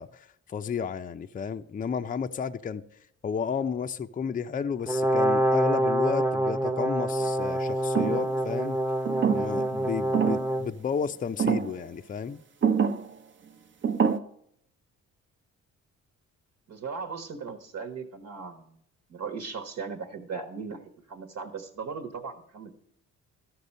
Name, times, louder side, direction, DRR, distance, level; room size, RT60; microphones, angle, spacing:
voice 1, 0.0-2.8 3.2-8.8 9.3-12.4, left 6 dB, 30° left, 0.5 m, -32 dB
Brass instrument, 4.9-10.7, right 1 dB, 5° right, 0.8 m, -26 dB
sound 1, 8.0-8.3 9.1-9.7 10.1-10.5 11.4-11.8 12.6-13.1 13.8-14.2, right 7 dB, 40° right, 0.8 m, -25 dB
voice 2, 16.7-18.8 19.1-20.8 21.1-22.7, right 5 dB, 65° right, 1.3 m, -37 dB
13.5 x 6.0 x 5.4 m
cardioid pair, 90°, 30 cm